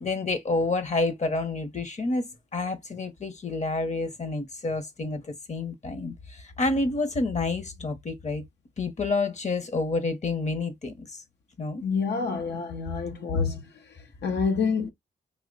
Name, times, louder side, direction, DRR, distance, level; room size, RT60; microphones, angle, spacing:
voice 1, 0.0-2.2 2.5-8.4 8.8-11.2 11.6-11.8, left 3 dB, 40° left, 0.8 m, -29 dB
voice 2, 11.8-13.6 14.2-14.9, left 5 dB, 75° left, 0.6 m, -27 dB
2.9 x 2.1 x 3.7 m
cardioid pair, 80°, 18 cm